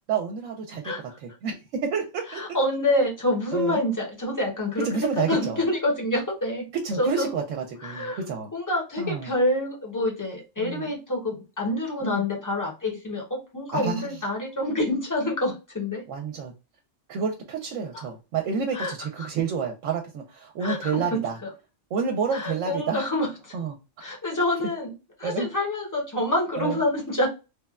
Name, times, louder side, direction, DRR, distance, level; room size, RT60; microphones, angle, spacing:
voice 1, 0.1-0.9 1.2-2.4 3.5-3.8 4.8-5.6 6.7-8.5 9.0-9.3 10.6-10.9 12.0-12.2 13.7-14.2 16.1-16.5 17.1-21.4 21.9-23.0 23.5-23.8 25.2-25.5 26.6-26.8, right 5 dB, 75° right, 4 dB, 0.9 m, -29 dB
voice 2, 0.8-1.2 2.3-6.7 7.0-7.3 7.8-8.2 8.5-16.0 17.9-18.0 18.7-19.3 20.6-21.2 22.3-23.5 24.0-24.9 25.2-27.3, left 1 dB, 20° left, -1 dB, 0.7 m, -27 dB
3.1 x 2.2 x 2.3 m, 0.29 s
omnidirectional pair, 1.3 m